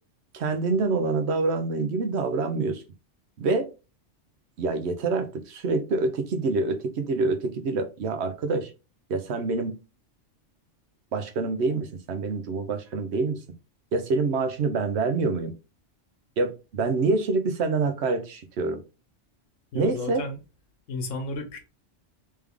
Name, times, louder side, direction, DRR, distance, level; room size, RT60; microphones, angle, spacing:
voice 1, 0.3-2.8 3.4-3.7 4.6-8.7 9.1-9.7 11.1-13.4 13.9-15.5 16.4-18.8 19.7-20.2, right 3 dB, 65° right, 1.0 m, -26 dB
voice 2, 19.7-20.4 20.9-21.6, left 3 dB, 90° left, 1.3 m, -33 dB
3.3 x 3.3 x 3.5 m
omnidirectional pair, 1.3 m